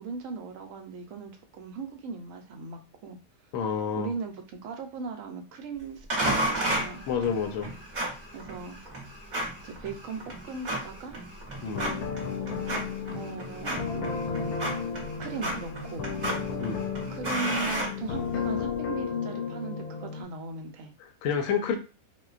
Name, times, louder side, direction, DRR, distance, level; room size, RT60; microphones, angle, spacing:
voice 1, 0.0-3.2 4.0-7.0 8.3-8.8 9.6-11.2 13.1-14.2 15.2-16.1 17.1-20.9, right 4 dB, 70° right, 5 dB, 0.9 m, -38 dB
voice 2, 3.5-4.1 7.1-7.7 11.6-11.9 16.6-16.8 21.0-21.8, left 6 dB, 70° left, 6 dB, 0.9 m, -29 dB
sound 1, 6.1-18.6, right 1 dB, 35° right, 0.9 m, -33 dB
sound 2, 11.7-20.2, left 6 dB, 90° left, 1.1 m, -33 dB
3.7 x 2.2 x 2.4 m, 0.32 s
omnidirectional pair, 1.5 m